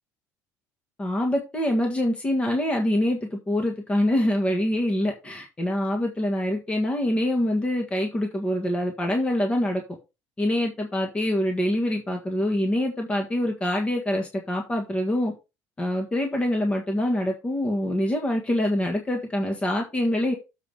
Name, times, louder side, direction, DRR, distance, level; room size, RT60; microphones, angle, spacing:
voice 1, 1.0-9.8 10.4-15.3 15.8-20.3, left 1 dB, 20° left, 1.6 m, -25 dB
7.4 x 4.9 x 5.5 m
cardioid pair, 120°, 6 cm